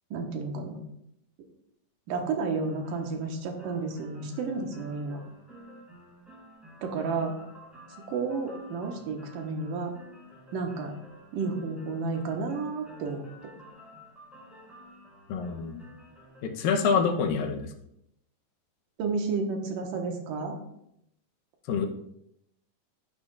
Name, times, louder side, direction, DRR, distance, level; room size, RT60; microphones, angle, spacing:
voice 1, 0.1-0.8 2.1-5.2 6.8-7.3 8.1-9.9 10.5-10.9 11.3-13.3 19.0-20.6, right 4 dB, 75° right, 2 dB, 2.9 m, -31 dB
sound 1, 2.5-16.4, equal, ahead, 3.7 m, -51 dB
voice 2, 15.3-15.9 16.4-17.7 21.7-21.9, left 5 dB, 80° left, 4 dB, 2.7 m, -26 dB
12.0 x 10.5 x 2.5 m, 0.78 s
omnidirectional pair, 4.0 m